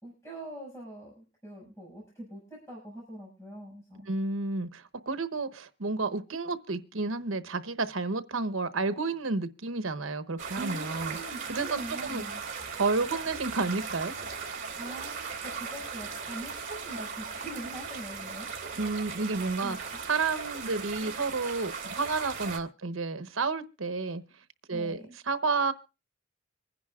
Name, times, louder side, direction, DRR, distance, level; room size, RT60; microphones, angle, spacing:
voice 1, 0.0-4.1 10.5-12.4 14.8-18.5 19.6-20.0 24.7-25.1, right 1 dB, 15° left, 6.2 m, -43 dB
voice 2, 4.1-11.2 11.5-12.2 12.7-14.1 18.7-19.8 20.0-24.2 24.7-25.7, right 3 dB, 85° right, 1.0 m, -31 dB
sound 1, 10.4-22.6, right 5 dB, 40° right, 2.8 m, -38 dB
25.5 x 10.5 x 2.4 m
head